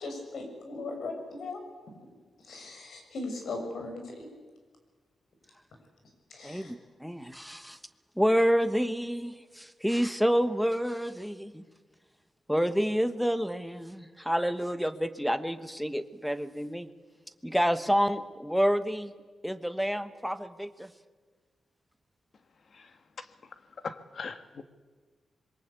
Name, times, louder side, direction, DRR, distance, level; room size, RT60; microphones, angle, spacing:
voice 1, 0.0-1.6 2.4-4.3 6.3-6.7, left 3 dB, 80° left, 4 dB, 6.4 m, -38 dB
voice 2, 6.4-6.7 7.0-7.8 8.2-11.6 12.5-16.9 17.4-19.1 19.4-20.9, equal, ahead, 11 dB, 1.2 m, -28 dB
voice 3, 23.8-24.6, left 5 dB, 50° left, 10 dB, 1.6 m, -39 dB
26.0 x 22.5 x 8.4 m, 1.4 s
wide cardioid pair, 135°, 0 cm